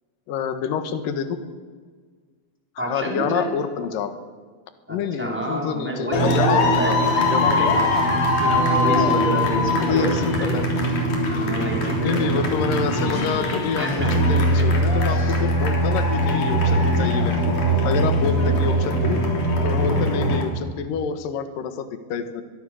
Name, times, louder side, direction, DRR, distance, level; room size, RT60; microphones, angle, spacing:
voice 1, 0.3-1.4 2.8-4.2 4.9-7.9 9.8-10.7 12.0-17.5 17.8-19.2 19.6-22.4, left 7 dB, 75° left, 9 dB, 2.0 m, -27 dB
voice 2, 2.8-3.5 4.9-8.0 8.4-10.6 11.3-12.4 13.8-14.7 15.1-15.4 18.4-18.7, right 1 dB, ahead, -1 dB, 3.9 m, -29 dB
sound 1, 6.1-20.4, equal, 40° left, 4.5 m, -21 dB
22.5 x 22.5 x 6.4 m, 1.5 s
omnidirectional pair, 6.0 m